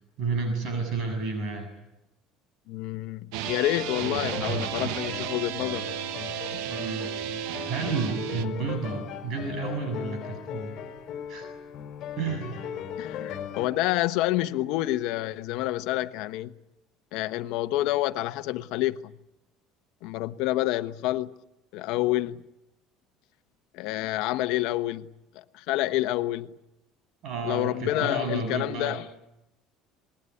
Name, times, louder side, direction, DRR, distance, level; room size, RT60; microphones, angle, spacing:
voice 1, 0.2-1.7 6.6-7.3 7.6-10.7 11.3-11.5 12.2-12.7 27.2-29.0, right 4 dB, 55° right, 7.3 m, -31 dB
voice 2, 2.7-5.9 13.0-16.5 17.1-19.0 20.0-21.3 21.7-22.4 23.7-25.1 25.3-26.5 27.4-29.1, left 16 dB, 70° left, 1.1 m, -28 dB
sound 1, 3.3-8.4, right 11 dB, 80° right, 1.3 m, -33 dB
sound 2, 3.7-13.7, left 9 dB, 50° left, 3.4 m, -38 dB
26.0 x 20.5 x 9.9 m
cardioid pair, 135°, 0 cm